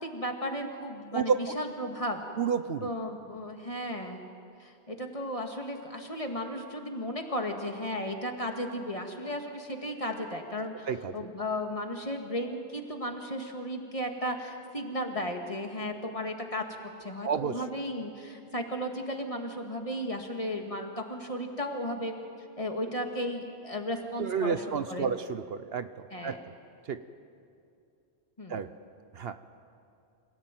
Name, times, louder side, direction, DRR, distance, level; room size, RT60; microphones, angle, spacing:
voice 1, 0.0-2.2 2.8-4.2 4.6-10.9 11.1-16.6 17.0-22.1 22.6-25.1 26.1-26.4 28.4-28.6, equal, 30° left, 3 dB, 2.2 m, -35 dB
voice 2, 2.4-2.9 10.9-11.1 17.2-17.5 24.2-25.9 26.2-26.4 26.9-27.0 28.5-28.7 29.1-29.4, right 6 dB, 65° right, 11 dB, 1.0 m, -30 dB
27.0 x 17.5 x 9.2 m, 2.5 s
omnidirectional pair, 1.1 m